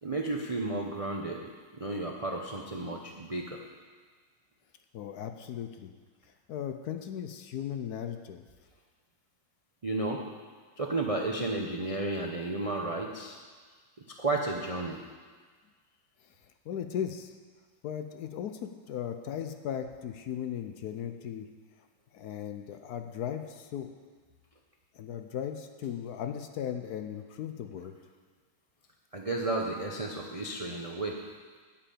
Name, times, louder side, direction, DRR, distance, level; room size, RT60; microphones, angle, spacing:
voice 1, 0.0-3.6 9.8-10.2 10.8-13.4 14.2-15.0 29.1-31.2, right 2 dB, 45° right, 1 dB, 0.4 m, -33 dB
voice 2, 4.9-5.9 6.5-8.4 16.7-17.3 17.8-21.5 22.1-23.9 24.9-27.9, left 9 dB, 65° left, 7 dB, 1.1 m, -37 dB
12.0 x 5.9 x 8.5 m, 1.5 s
omnidirectional pair, 2.0 m